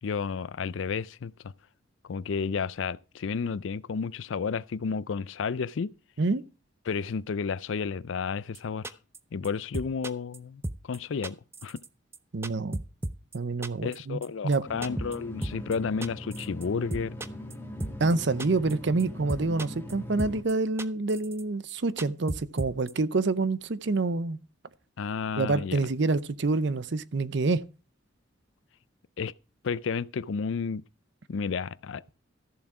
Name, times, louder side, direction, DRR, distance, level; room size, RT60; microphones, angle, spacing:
voice 1, 0.0-1.5 2.0-5.9 6.9-9.0 9.3-11.4 11.6-11.8 13.8-17.2 25.0-25.8 29.2-29.3 29.6-30.8 31.3-32.0, left 5 dB, 70° left, 0.4 m, -32 dB
sound 1, 8.5-8.6 8.8-9.2 9.4-9.5 9.7-10.4 10.6-11.0 11.2-11.9 12.1-12.2 12.4-13.4 13.6-14.0 14.2-14.3 14.5-14.6 14.8-15.2 15.4-15.8 16.0-16.6 16.9-17.5 17.8-18.1 18.4-18.7 19.0-19.1 19.3-19.9 20.2-20.5 20.8-21.4 21.7-21.8 22.0-22.9, right 1 dB, 10° right, 0.5 m, -34 dB
voice 2, 12.3-12.8 13.3-14.2 14.4-14.6 18.0-24.4 25.4-27.6, right 3 dB, 60° right, 0.6 m, -27 dB
sound 2, 14.6-20.4, equal, 10° left, 1.5 m, -40 dB
14.0 x 7.3 x 4.8 m
head